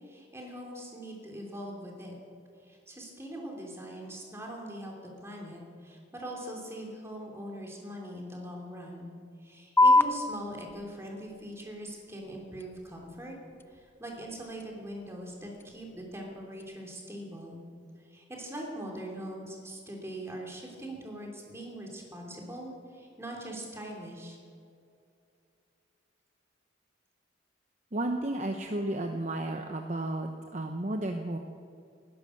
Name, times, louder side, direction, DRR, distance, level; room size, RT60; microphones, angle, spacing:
voice 1, 0.0-2.1 2.7-9.1 9.4-13.3 13.7-17.6 18.1-24.4, right 1 dB, 15° right, 0 dB, 3.1 m, -42 dB
sound 1, 9.8-16.8, left 2 dB, 10° left, 0.4 m, -30 dB
voice 2, 27.9-31.4, right 1 dB, 35° right, 4 dB, 0.8 m, -33 dB
20.0 x 11.0 x 6.6 m, 2.4 s
head